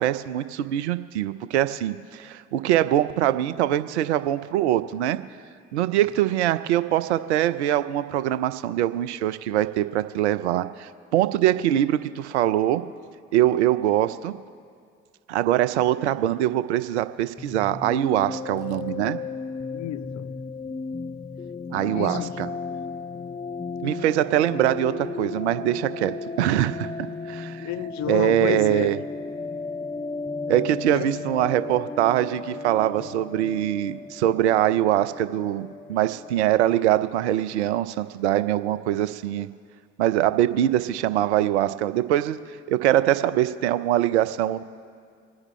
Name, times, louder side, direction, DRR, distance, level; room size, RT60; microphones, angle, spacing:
voice 1, 0.0-5.2 5.7-12.8 13.3-14.3 15.3-19.2 21.7-22.5 23.8-26.9 27.3-27.7 28.1-29.0 30.5-39.5 40.0-42.4 42.7-44.6, right 12 dB, 85° right, 0.6 m, -23 dB
sound 1, 17.4-36.9, left 4 dB, 15° left, 0.6 m, -35 dB
voice 2, 19.7-20.4 21.9-22.4 27.6-28.9 30.9-31.1, left 14 dB, 55° left, 0.5 m, -31 dB
27.0 x 9.7 x 3.2 m
hypercardioid pair, 40°, 33 cm